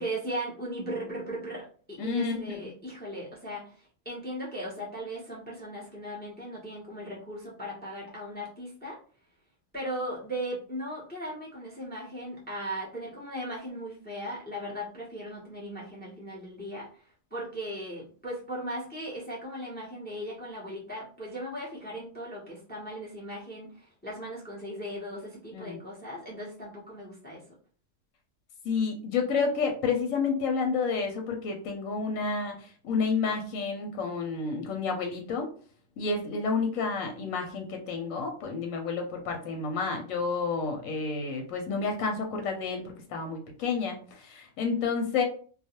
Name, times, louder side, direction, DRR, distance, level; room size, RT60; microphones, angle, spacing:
voice 1, 0.0-3.7 4.0-9.0 9.7-16.9 17.3-27.4, right 1 dB, 10° left, -3 dB, 0.5 m, -37 dB
voice 2, 2.0-2.7 25.5-25.8 28.6-32.5 32.8-35.5 36.0-45.2, left 4 dB, 80° left, 3 dB, 1.0 m, -30 dB
2.4 x 2.2 x 2.8 m, 0.42 s
omnidirectional pair, 1.3 m